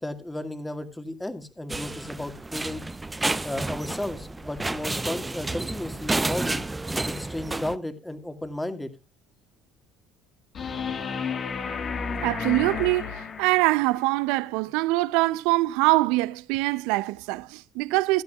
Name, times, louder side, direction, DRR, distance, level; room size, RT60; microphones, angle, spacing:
voice 1, 0.0-2.8 3.4-6.6 7.0-8.9, left 1 dB, 10° left, 2.0 m, -34 dB
sound 1, 1.7-7.8, right 2 dB, 15° right, 0.7 m, -30 dB
sound 2, 10.5-13.9 16.5-16.6, left 5 dB, 45° left, 2.0 m, -32 dB
voice 2, 12.2-18.2, right 20 dB, 70° right, 0.5 m, -24 dB
16.0 x 11.5 x 2.4 m
hypercardioid pair, 65°, 0 cm